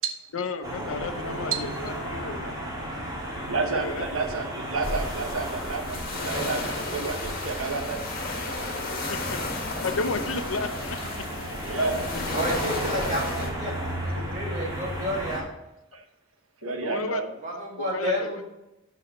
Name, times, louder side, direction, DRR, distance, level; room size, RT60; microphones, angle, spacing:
voice 1, 0.3-2.6 3.7-4.5 8.9-9.5 9.8-11.0 11.7-13.4 14.2-14.3 15.9-16.0 16.6-17.2 17.8-18.3, left 4 dB, 80° left, 9 dB, 0.7 m, -33 dB
sound 1, 0.6-15.4, equal, 20° right, 2.1 m, -34 dB
voice 2, 3.5-8.0 11.5-12.1 15.9-16.0 16.6-17.3, right 4 dB, 85° right, 4 dB, 1.0 m, -30 dB
sound 2, 4.8-13.5, left 2 dB, 45° left, 1.7 m, -34 dB
voice 3, 12.3-15.4 17.4-18.4, equal, 35° right, -2 dB, 2.1 m, -31 dB
5.9 x 5.9 x 5.5 m, 0.92 s
head